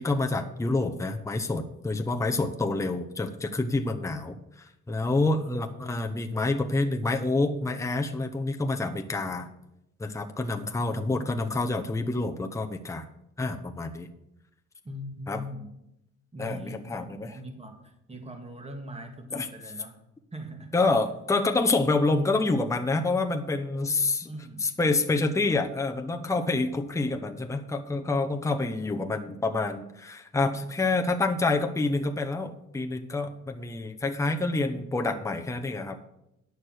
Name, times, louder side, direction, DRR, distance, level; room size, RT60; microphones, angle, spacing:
voice 1, 0.0-9.5 10.0-13.1 13.4-14.1 15.3-15.4 16.4-17.3 19.3-19.5 20.7-24.3 24.6-36.1, left 3 dB, 10° left, 4 dB, 0.9 m, -27 dB
voice 2, 5.5-6.2 10.8-11.5 14.8-15.7 16.3-20.0 20.3-20.9 24.2-24.8, equal, 20° right, 5 dB, 1.9 m, -41 dB
9.5 x 6.6 x 6.5 m, 0.84 s
cardioid pair, 90°, 30 cm